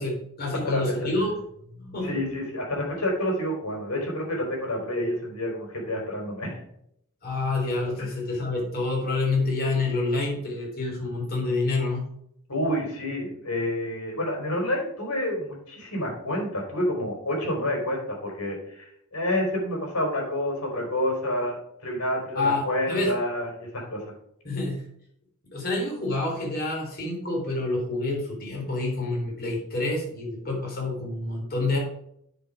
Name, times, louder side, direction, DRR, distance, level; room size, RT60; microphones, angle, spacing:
voice 1, 0.0-2.2 7.2-12.1 22.3-23.1 24.4-24.8 25.5-31.8, left 2 dB, 45° left, -2 dB, 3.9 m, -28 dB
voice 2, 0.5-0.9 2.0-6.6 8.0-8.1 12.5-24.0, left 1 dB, 80° left, -1 dB, 4.1 m, -29 dB
9.8 x 5.4 x 4.9 m, 0.72 s
head